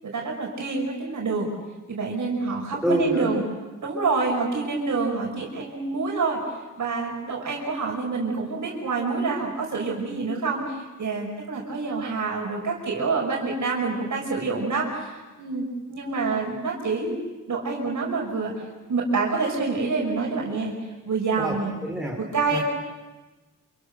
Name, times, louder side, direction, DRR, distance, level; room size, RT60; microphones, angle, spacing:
voice 1, 0.0-1.5 1.9-3.4 3.8-6.4 6.8-17.2 17.5-21.7 22.2-22.6, right 4 dB, 65° right, -2 dB, 5.9 m, -27 dB
voice 2, 2.8-3.3 21.4-21.6 21.8-22.2 22.5-22.6, right 1 dB, ahead, -2 dB, 4.3 m, -25 dB
29.0 x 28.0 x 6.6 m, 1.2 s
wide cardioid pair, 130°, 33 cm